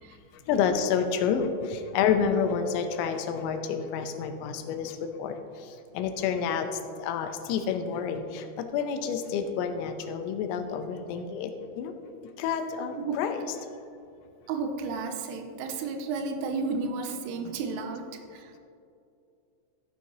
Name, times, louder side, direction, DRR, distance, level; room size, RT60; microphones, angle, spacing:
voice 1, 0.5-5.4 5.9-6.7 7.0-11.5 11.8-11.9 12.4-13.4, left 7 dB, 85° left, 7 dB, 3.3 m, -29 dB
voice 2, 14.5-18.5, right 4 dB, 85° right, 5 dB, 3.3 m, -32 dB
13.0 x 9.2 x 2.7 m, 2.6 s
omnidirectional pair, 5.9 m